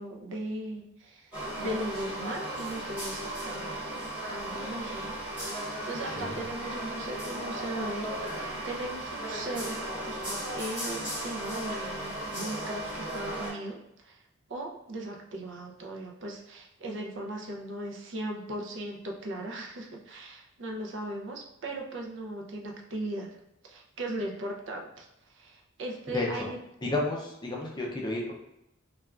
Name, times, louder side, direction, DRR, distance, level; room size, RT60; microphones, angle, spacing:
voice 1, 0.0-3.8 4.3-5.2 5.4-9.8 10.0-13.8 14.0-14.2 14.5-23.3 23.6-26.6, right 1 dB, 60° right, 0 dB, 0.5 m, -38 dB
sound 1, 1.3-13.5, right 1 dB, 10° right, 1.2 m, -36 dB
voice 2, 6.1-6.4 26.1-26.5 26.8-28.3, left 2 dB, 20° left, -2 dB, 0.4 m, -32 dB
3.3 x 2.3 x 2.3 m, 0.83 s
head